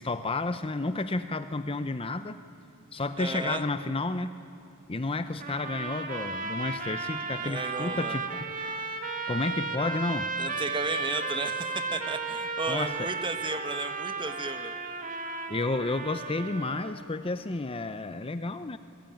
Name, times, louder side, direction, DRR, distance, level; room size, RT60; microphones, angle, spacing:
voice 1, 0.0-2.4 2.9-4.3 4.9-8.2 9.3-10.3 12.7-13.1 15.5-18.8, left 2 dB, 25° left, 11 dB, 0.7 m, -31 dB
voice 2, 3.2-3.6 7.4-8.2 10.4-14.7, right 3 dB, 25° right, 8 dB, 1.5 m, -34 dB
Trumpet - Csharp natural minor, 5.4-17.0, right 4 dB, 40° right, 2.4 m, -34 dB
27.5 x 22.5 x 9.1 m, 2.7 s
head